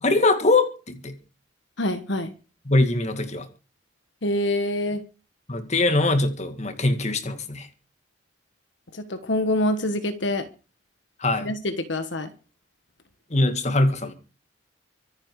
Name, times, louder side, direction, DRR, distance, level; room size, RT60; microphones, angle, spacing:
voice 1, 0.0-1.2 2.7-3.5 5.5-7.7 11.2-11.5 13.3-14.1, left 2 dB, 35° left, 2.1 m, -22 dB
voice 2, 1.8-2.3 4.2-5.0 8.9-10.5 11.4-12.3, left 1 dB, 65° left, 1.4 m, -26 dB
24.5 x 8.8 x 4.8 m
head